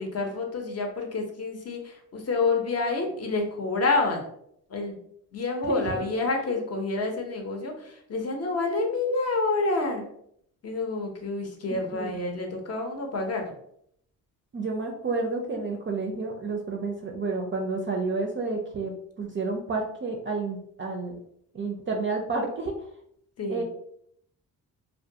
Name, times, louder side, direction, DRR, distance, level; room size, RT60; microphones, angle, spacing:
voice 1, 0.0-4.2 4.7-5.0 5.3-10.0 10.6-13.5 23.4-23.6, left 3 dB, 40° left, 3 dB, 0.7 m, -28 dB
voice 2, 5.6-6.0 12.0-12.1 14.5-21.2 21.5-22.7 23.5-23.6, right 3 dB, 30° right, 2 dB, 0.4 m, -30 dB
2.2 x 2.2 x 2.7 m, 0.70 s
cardioid pair, 70°, 38 cm